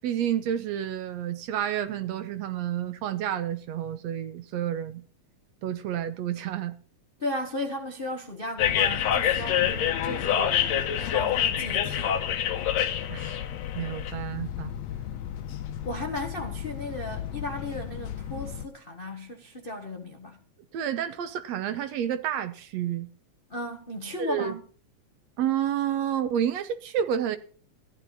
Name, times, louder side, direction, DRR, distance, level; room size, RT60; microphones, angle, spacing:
voice 1, 0.0-5.0 5.6-6.8 13.1-13.5 13.8-14.7 20.7-23.1 24.2-24.5 25.4-27.4, right 10 dB, 70° right, 2.0 m, -30 dB
voice 2, 7.2-12.2 15.8-20.4 23.5-24.6, left 1 dB, 50° left, 0.6 m, -35 dB
sound 1, 8.6-18.7, left 10 dB, 70° left, 2.1 m, -28 dB
15.0 x 11.0 x 4.2 m
omnidirectional pair, 3.4 m